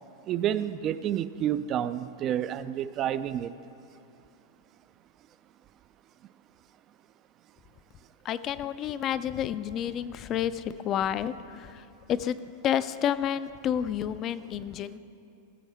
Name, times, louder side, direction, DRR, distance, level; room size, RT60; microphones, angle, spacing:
voice 1, 0.3-3.5, right 10 dB, 40° right, 14 dB, 0.4 m, -29 dB
voice 2, 8.2-12.4 12.6-15.0, left 10 dB, 35° left, 14 dB, 0.4 m, -30 dB
16.5 x 7.1 x 3.5 m, 2.7 s
hypercardioid pair, 110°, 0 cm